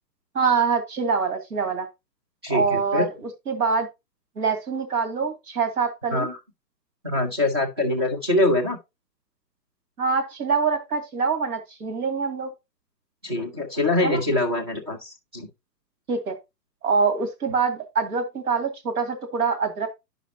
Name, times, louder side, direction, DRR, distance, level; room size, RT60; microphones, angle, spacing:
voice 1, 0.3-1.9 2.5-3.1 3.5-3.9 4.4-6.3 10.0-12.5 14.0-14.2 16.1-16.4 16.8-19.9, right 5 dB, 60° right, 2.3 m, -24 dB
voice 2, 2.4-3.1 6.1-6.4 7.0-8.8 13.2-15.5, left 2 dB, 15° right, 0.6 m, -24 dB
11.0 x 5.1 x 2.7 m
hypercardioid pair, 160°, 50 cm